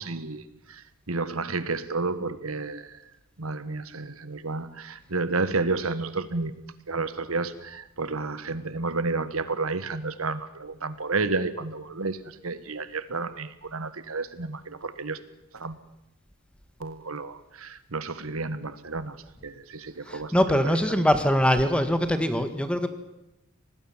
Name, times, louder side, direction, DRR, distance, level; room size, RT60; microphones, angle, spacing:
voice 1, 0.0-3.0 3.4-6.5 6.9-15.2 15.5-15.8 16.8-21.0, right 3 dB, 75° right, 13 dB, 1.5 m, -31 dB
voice 2, 20.0-22.9, equal, 5° left, 9 dB, 1.7 m, -23 dB
25.5 x 19.0 x 7.3 m, 0.91 s
head